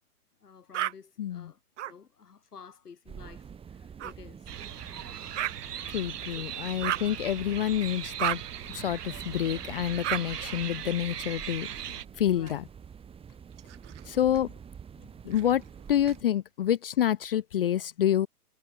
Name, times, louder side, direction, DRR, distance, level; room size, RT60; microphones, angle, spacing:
voice 1, 0.4-4.5 6.3-6.7 12.3-12.6 13.3-13.4 13.9-14.6 15.0-15.5 16.2-16.3, left 6 dB, 80° left, 4.2 m, -52 dB
sound 1, 0.7-0.9 1.8-1.9 4.0-4.1 5.4-5.5 6.8-7.1 8.2-8.4 10.0-10.2 11.7-12.5 13.5-14.4 15.3-16.2, right 12 dB, 55° right, 0.5 m, -33 dB
voice 2, 1.2-1.5 5.9-8.4 8.7-12.6 14.1-14.5 15.2-15.6 15.9-18.3, left 11 dB, 40° left, 0.5 m, -28 dB
sound 2, 3.1-16.2, right 7 dB, 10° right, 3.8 m, -47 dB
sound 3, 4.5-12.1, right 9 dB, 85° right, 0.8 m, -39 dB
hypercardioid pair, 135°, 46 cm